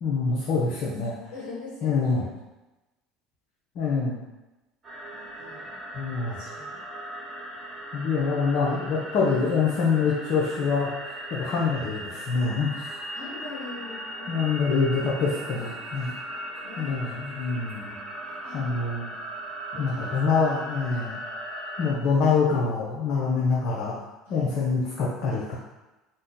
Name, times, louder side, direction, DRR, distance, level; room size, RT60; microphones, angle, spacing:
voice 1, 0.0-1.1 1.8-2.2 3.8-4.2 5.9-6.4 7.9-12.7 14.3-16.1 16.8-18.0 18.5-19.1 19.7-21.2 21.8-24.0 24.3-25.6, left 4 dB, 60° left, -6 dB, 0.6 m, -25 dB
voice 2, 1.3-2.3 5.1-5.8 6.3-6.8 13.1-14.5 16.6-17.5 18.4-18.6 19.7-20.4 20.7-20.9 24.2-24.5, left 3 dB, 75° left, -7 dB, 1.4 m, -42 dB
sound 1, 4.8-21.9, right 1 dB, 30° right, 1.0 m, -38 dB
2.6 x 2.2 x 3.7 m, 1.1 s
hypercardioid pair, 75°, 0 cm